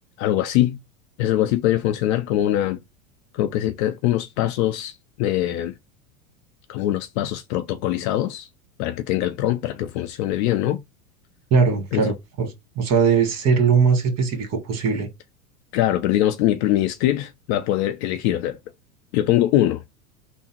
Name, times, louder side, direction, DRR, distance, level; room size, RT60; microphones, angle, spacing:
voice 1, 0.2-0.8 1.2-2.8 3.3-5.7 6.7-8.5 8.8-10.8 11.9-12.1 15.7-18.6 19.1-19.8, left 13 dB, 50° left, 0.6 m, -22 dB
voice 2, 11.5-12.5 12.8-15.1, right 5 dB, 35° right, 1.6 m, -20 dB
3.5 x 2.1 x 4.3 m
hypercardioid pair, 105°, 45 cm